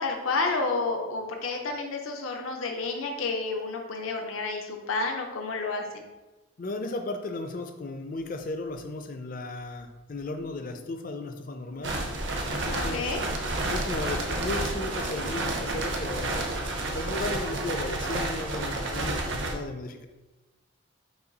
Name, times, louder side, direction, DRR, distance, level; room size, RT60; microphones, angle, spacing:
voice 1, 0.0-6.1 12.7-13.2, left 3 dB, 85° left, 3 dB, 0.6 m, -30 dB
voice 2, 6.6-12.0 12.5-13.1 13.7-16.5 16.9-20.1, left 2 dB, 40° left, 6 dB, 0.4 m, -35 dB
sound 1, 11.8-19.5, right 2 dB, 60° right, 0.7 m, -30 dB
5.6 x 2.4 x 3.9 m, 1.1 s
head